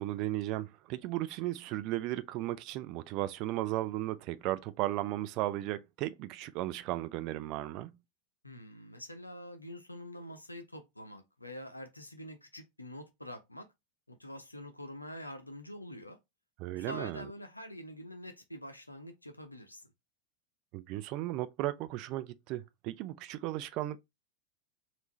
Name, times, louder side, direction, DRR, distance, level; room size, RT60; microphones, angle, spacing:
voice 1, 0.0-7.9 16.6-17.2 20.7-24.0, right 15 dB, 45° right, 0.4 m, -35 dB
voice 2, 8.4-13.7 14.1-16.2 16.7-19.9, left 1 dB, 85° left, 0.7 m, -46 dB
3.5 x 2.7 x 4.1 m
figure-of-eight pair, 85°, 0 cm